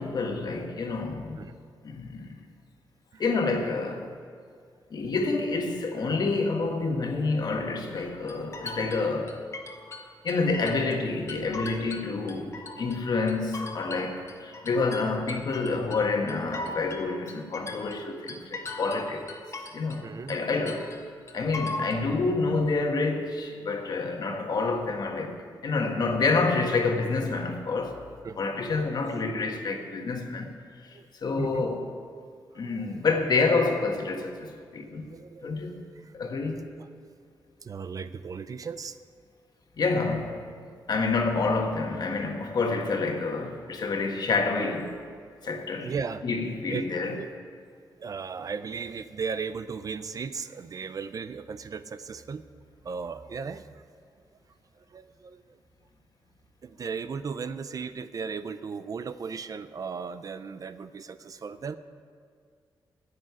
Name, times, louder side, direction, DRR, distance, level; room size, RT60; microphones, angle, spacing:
voice 1, 0.0-1.4 1.8-2.4 3.2-4.1 4.9-9.4 10.2-19.2 19.7-20.9 21.3-25.3 25.6-28.0 28.4-30.5 30.8-31.9 32.5-35.0 35.4-35.8 36.1-36.6 39.8-40.4 40.9-44.9 45.4-45.9 46.2-47.2, left 3 dB, 55° left, 1.5 m, -28 dB
sound 1, 8.0-11.0 11.3-13.0 13.3-20.0 20.3-22.0, left 2 dB, 35° left, 1.3 m, -39 dB
voice 2, 20.0-20.4 28.2-28.5 29.0-29.1 30.9-31.1 31.4-31.7 35.0-35.7 36.0-36.1 36.8-36.9 37.6-39.0 45.4-45.5 45.8-46.2 46.7-47.3 48.0-52.4 52.8-53.8 54.9-55.6 56.6-61.8, right 5 dB, 45° right, 0.5 m, -36 dB
10.5 x 7.7 x 9.5 m
wide cardioid pair, 130°, 8 cm